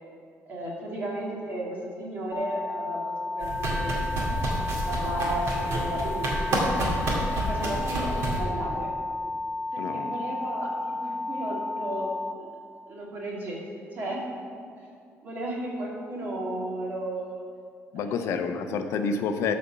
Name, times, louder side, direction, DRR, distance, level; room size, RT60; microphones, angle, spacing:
voice 1, 0.5-4.4 4.9-6.7 7.3-8.9 9.7-12.1 12.4-12.6 12.9-13.6 13.9-14.3 15.2-17.4 18.0-18.2, right 1 dB, 35° right, -4 dB, 2.2 m, -34 dB
sound 1, 2.3-12.3, left 2 dB, 30° left, 0.5 m, -32 dB
sound 2, 3.4-8.4, right 1 dB, 60° right, 2.1 m, -29 dB
voice 2, 9.8-10.1 17.9-19.5, left 5 dB, 65° left, 7 dB, 0.7 m, -28 dB
12.0 x 4.2 x 6.7 m, 2.3 s
cardioid pair, 170°, 5 cm